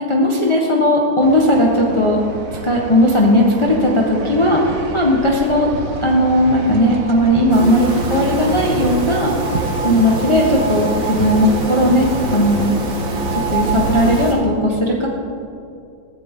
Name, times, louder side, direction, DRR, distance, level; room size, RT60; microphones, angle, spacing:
voice 1, 0.1-2.2 2.6-5.7 6.0-9.3 9.8-12.7 13.5-15.1, left 1 dB, 15° left, -2 dB, 1.3 m, -16 dB
sound 1, 1.2-14.2, right 4 dB, 50° right, 1.2 m, -27 dB
sound 2, 7.5-14.3, right 1 dB, 70° right, 3.2 m, -27 dB
21.5 x 14.0 x 3.8 m, 2.5 s
omnidirectional pair, 2.2 m